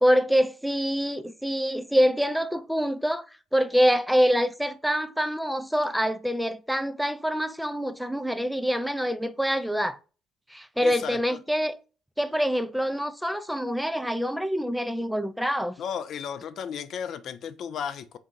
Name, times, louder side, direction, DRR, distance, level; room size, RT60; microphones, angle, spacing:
voice 1, 0.0-3.2 3.5-10.0 10.5-11.8 12.2-15.8, equal, ahead, 0.4 m, -25 dB
voice 2, 10.8-11.2 15.8-18.2, left 7 dB, 60° left, 0.4 m, -34 dB
3.5 x 2.8 x 3.7 m
supercardioid pair, 65°, 0 cm